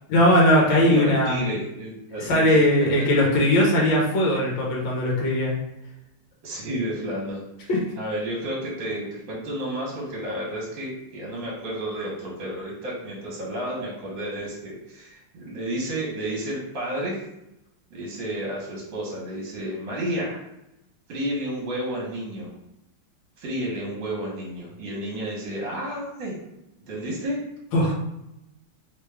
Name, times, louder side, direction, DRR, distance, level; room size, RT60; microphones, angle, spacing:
voice 1, 0.1-1.4 2.2-5.5 7.7-7.8 27.7-27.9, left 1 dB, 70° left, -2 dB, 1.4 m, -19 dB
voice 2, 0.7-2.5 6.4-7.4 8.0-17.2 17.9-20.4 21.1-22.5 23.4-26.4 26.9-27.4, right 1 dB, 65° right, -4 dB, 1.6 m, -31 dB
3.6 x 2.2 x 3.2 m, 0.85 s
omnidirectional pair, 2.4 m